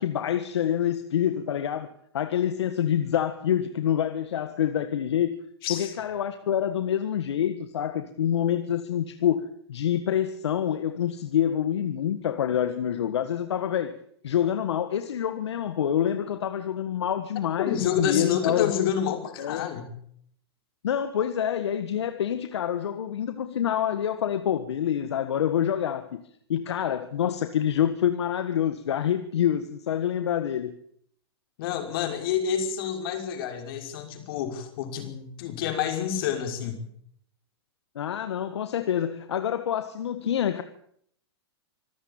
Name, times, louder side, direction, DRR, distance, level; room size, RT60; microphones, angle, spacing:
voice 1, 0.0-5.4 5.7-14.0 14.2-18.9 19.4-19.7 20.8-26.2 26.5-30.7 37.9-40.6, left 9 dB, 80° left, 1.7 m, -27 dB
voice 2, 5.6-5.9 17.6-19.9 31.6-36.8, left 9 dB, 60° left, 5.8 m, -28 dB
25.5 x 14.5 x 8.9 m
hypercardioid pair, 130°, 14 cm